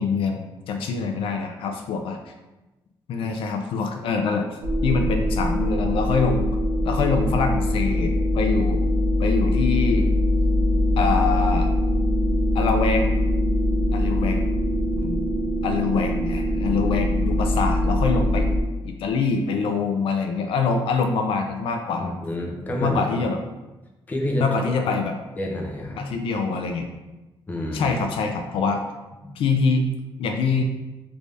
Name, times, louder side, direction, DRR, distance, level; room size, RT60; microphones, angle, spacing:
voice 1, 0.0-2.2 3.1-6.5 6.8-8.8 9.2-10.1 11.0-11.7 12.5-13.2 13.9-14.4 15.0-15.2 15.6-18.5 18.8-22.1 22.8-23.4 24.4-25.1 26.0-26.9 27.7-28.8 29.4-29.9 30.2-30.6, left 4 dB, 70° left, 4 dB, 0.3 m, -24 dB
sound 1, 4.6-18.6, left 1 dB, 55° right, 0.7 m, -22 dB
voice 2, 22.0-23.3 24.1-24.5 24.8-24.9 25.4-26.1 27.5-28.0 29.2-29.4, left 1 dB, 15° left, 0 dB, 0.5 m, -29 dB
3.4 x 2.6 x 3.2 m, 1.1 s
cardioid pair, 145°, 10 cm